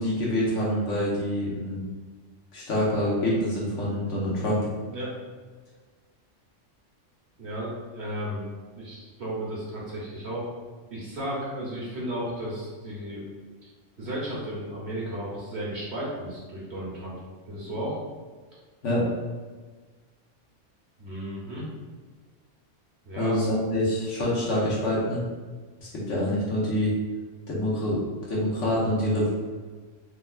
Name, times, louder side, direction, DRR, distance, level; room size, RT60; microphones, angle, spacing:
voice 1, 0.0-1.8 2.5-4.7 18.8-19.0 23.1-25.2 25.8-26.9 27.5-29.3, left 1 dB, 75° left, -6 dB, 1.3 m, -26 dB
voice 2, 7.4-8.4 8.7-10.5 10.9-13.3 14.0-17.2 17.5-18.0 21.0-21.6 23.0-23.3, right 1 dB, 65° right, -6 dB, 1.3 m, -34 dB
3.5 x 3.3 x 2.3 m, 1.4 s
omnidirectional pair, 1.3 m